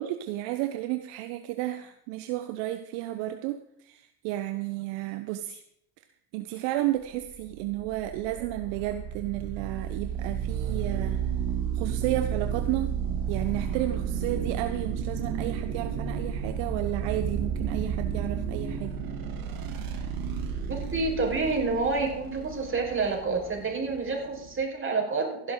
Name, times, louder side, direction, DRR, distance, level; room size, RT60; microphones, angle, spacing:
voice 1, 0.0-5.6 6.3-11.2 11.7-13.0 13.3-18.9, right 14 dB, 60° right, 9 dB, 1.0 m, -32 dB
sound 1, 7.2-24.6, right 7 dB, 45° right, 2.3 m, -32 dB
voice 2, 20.7-25.5, right 3 dB, 25° right, 1 dB, 4.9 m, -28 dB
16.0 x 11.5 x 3.8 m, 0.72 s
hypercardioid pair, 70°, 49 cm